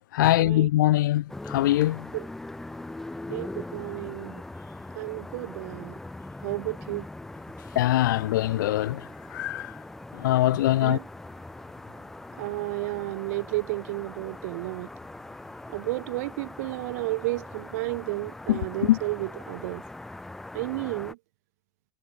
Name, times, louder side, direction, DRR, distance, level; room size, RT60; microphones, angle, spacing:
voice 1, 0.1-2.1 7.7-9.8 10.1-11.0 18.5-19.0, left 15 dB, 70° left, 2.6 m, -23 dB
sound 1, 1.3-21.1, left 2 dB, 5° left, 2.6 m, -41 dB
voice 2, 3.3-4.4 5.0-5.9 6.4-7.1 10.8-11.0 12.4-14.9 15.7-19.8 20.5-21.2, right 22 dB, 50° right, 1.9 m, -32 dB
supercardioid pair, 180°, 11 cm